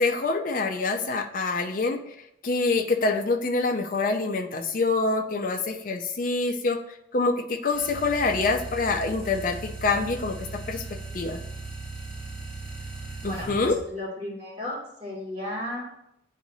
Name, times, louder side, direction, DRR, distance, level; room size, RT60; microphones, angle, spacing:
voice 1, 0.0-2.1 2.4-6.8 7.1-10.8 11.1-11.4 13.2-13.8, left 3 dB, 45° left, 5 dB, 0.5 m, -26 dB
sound 1, 7.7-13.8, right 3 dB, 10° right, 1.8 m, -38 dB
voice 2, 13.2-15.9, left 1 dB, 30° right, -6 dB, 2.4 m, -34 dB
9.0 x 4.0 x 2.7 m, 0.78 s
head